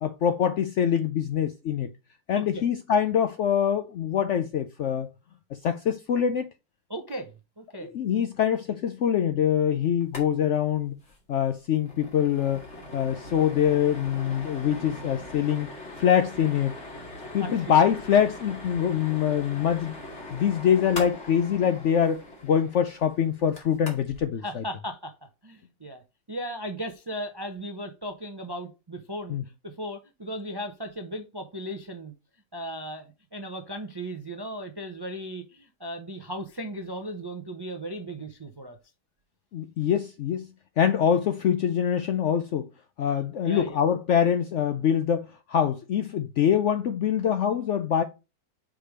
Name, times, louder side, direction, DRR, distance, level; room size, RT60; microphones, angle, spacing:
voice 1, 0.0-1.9 2.3-5.1 5.6-6.5 7.9-10.9 11.3-12.6 12.9-15.7 16.0-16.8 17.3-19.9 20.3-24.6 29.3-29.4 39.5-40.5 40.8-42.7 43.0-48.0, left 8 dB, 70° left, 0.7 m, -24 dB
voice 2, 6.9-8.1 17.4-17.7 24.4-25.1 25.4-26.0 26.3-32.1 32.5-38.8 43.4-43.8, equal, 30° right, 0.4 m, -36 dB
sound 1, 10.0-10.3 10.5-10.6 11.0-11.2 11.5-24.2, left 1 dB, 45° left, 2.3 m, -41 dB
5.0 x 4.8 x 4.9 m
omnidirectional pair, 1.7 m